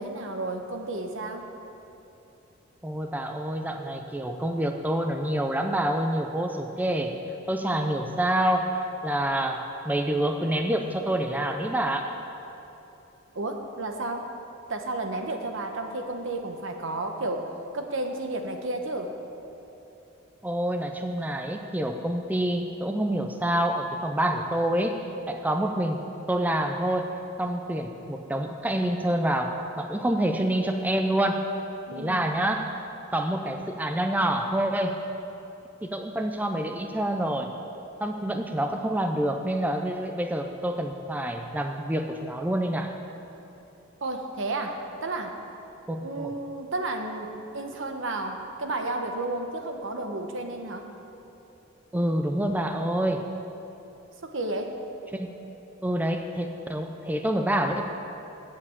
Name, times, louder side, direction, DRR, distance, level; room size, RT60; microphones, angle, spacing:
voice 1, 0.0-1.5 13.3-14.3 14.7-17.5 17.7-19.1 31.9-32.4 44.0-45.4 46.0-50.9 54.2-54.7, right 2 dB, 65° right, 4 dB, 1.0 m, -32 dB
voice 2, 2.8-7.1 7.5-9.6 9.9-12.1 20.4-26.0 26.3-27.1 27.4-31.4 31.9-32.8 33.1-35.0 35.8-37.5 38.0-42.9 45.9-46.3 51.9-53.3 55.1-55.3 55.8-57.8, right 1 dB, 10° right, 4 dB, 0.4 m, -27 dB
8.5 x 7.4 x 8.4 m, 2.9 s
head